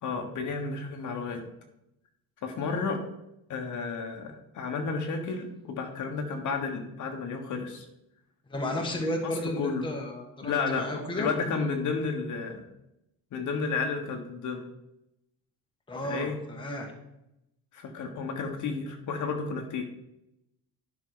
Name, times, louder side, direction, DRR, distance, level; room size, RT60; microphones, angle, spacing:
voice 1, 0.0-1.4 2.4-3.0 3.5-7.8 9.0-9.9 10.4-10.8 11.2-12.6 13.3-14.6 16.0-16.4 17.7-19.8, left 4 dB, 50° left, 4 dB, 1.3 m, -32 dB
voice 2, 8.5-11.3 15.9-16.9, left 1 dB, 15° left, 0 dB, 1.3 m, -33 dB
11.0 x 5.8 x 3.9 m, 0.85 s
cardioid pair, 165°, 37 cm